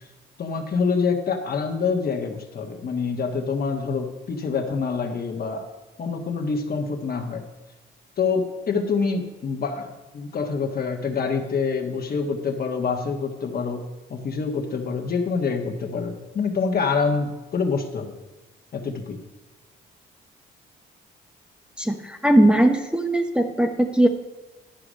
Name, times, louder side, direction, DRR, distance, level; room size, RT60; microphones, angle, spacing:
voice 1, 0.4-5.7 6.0-7.4 8.2-13.8 14.1-18.1 18.7-19.2, left 5 dB, 50° left, 4 dB, 1.5 m, -26 dB
voice 2, 21.8-24.1, right 1 dB, 5° right, 3 dB, 0.8 m, -19 dB
11.5 x 4.9 x 6.4 m, 1.1 s
cardioid pair, 90°, 20 cm